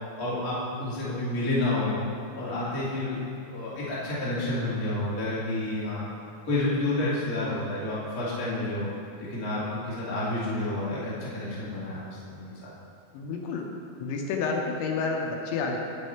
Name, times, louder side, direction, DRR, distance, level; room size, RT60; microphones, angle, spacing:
voice 1, 0.2-1.9 2.3-6.0 6.4-8.9 9.3-12.0 12.3-12.7, left 2 dB, 35° left, -9 dB, 1.4 m, -29 dB
voice 2, 13.1-13.7 14.0-15.8, left 4 dB, 80° left, 1 dB, 3.1 m, -29 dB
8.3 x 8.1 x 4.4 m, 2.4 s
omnidirectional pair, 5.3 m